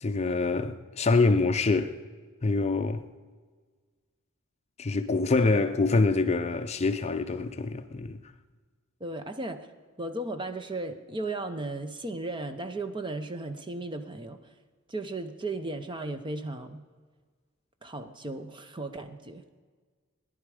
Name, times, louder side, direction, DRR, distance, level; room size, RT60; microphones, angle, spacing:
voice 1, 0.0-2.0 2.4-3.0 4.8-8.2, left 3 dB, 30° left, 0.5 m, -25 dB
voice 2, 9.0-9.7 10.0-14.4 14.9-16.8 17.8-19.4, right 2 dB, 20° right, 0.8 m, -35 dB
17.5 x 11.0 x 5.0 m
head